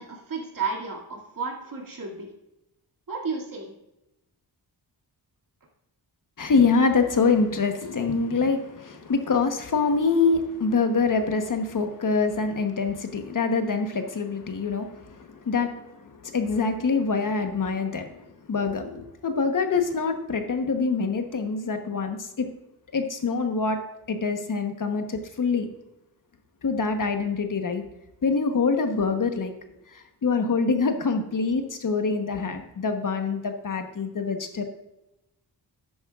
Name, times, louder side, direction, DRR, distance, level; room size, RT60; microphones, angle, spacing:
voice 1, 0.0-2.3 3.1-3.7, right 4 dB, 50° right, -1 dB, 2.4 m, -32 dB
voice 2, 6.4-15.9 16.2-22.5 22.9-23.8 24.1-25.7 26.6-27.8 28.2-29.5 29.9-34.6, left 4 dB, 50° left, 6 dB, 1.1 m, -25 dB
12.0 x 8.6 x 2.4 m, 0.91 s
wide cardioid pair, 110°, 41 cm